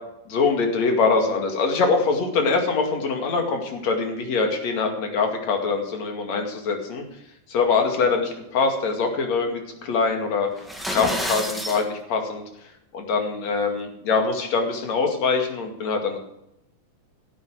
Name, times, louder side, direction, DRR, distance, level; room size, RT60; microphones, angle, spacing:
voice 1, 0.3-7.0 7.5-10.5 10.9-12.4 12.9-16.2, left 4 dB, 60° left, 3 dB, 3.4 m, -23 dB
sound 1, 10.6-11.8, equal, ahead, 1.3 m, -29 dB
16.5 x 8.3 x 6.3 m, 0.81 s
omnidirectional pair, 3.6 m